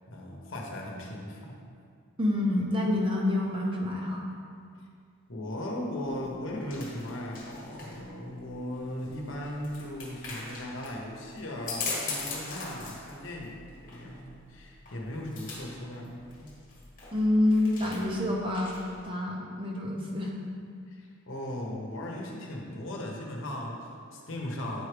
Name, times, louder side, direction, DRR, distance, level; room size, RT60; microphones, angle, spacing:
voice 1, 0.1-1.6 5.3-16.5 20.9-24.9, left 1 dB, 65° left, -1 dB, 1.0 m, -38 dB
voice 2, 2.2-4.3 17.1-18.8 19.0-20.3, left 1 dB, 25° right, -2 dB, 0.7 m, -27 dB
sound 1, 6.0-19.0, left 3 dB, 40° left, 1.3 m, -41 dB
8.8 x 4.7 x 3.3 m, 2.2 s
head